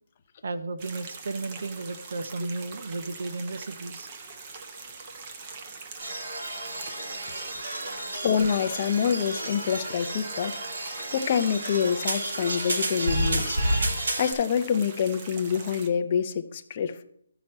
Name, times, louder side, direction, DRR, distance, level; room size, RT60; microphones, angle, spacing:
voice 1, 0.4-4.1 7.0-7.4, right 3 dB, 55° right, 0.7 m, -34 dB
sound 1, 0.8-15.9, right 4 dB, 25° right, 0.8 m, -43 dB
sound 2, 6.0-14.3, right 1 dB, 75° right, 4.5 m, -31 dB
voice 2, 8.2-10.6 11.1-13.6 14.2-17.0, left 7 dB, 25° left, 0.6 m, -26 dB
14.0 x 6.0 x 4.3 m
hypercardioid pair, 175°, 0 cm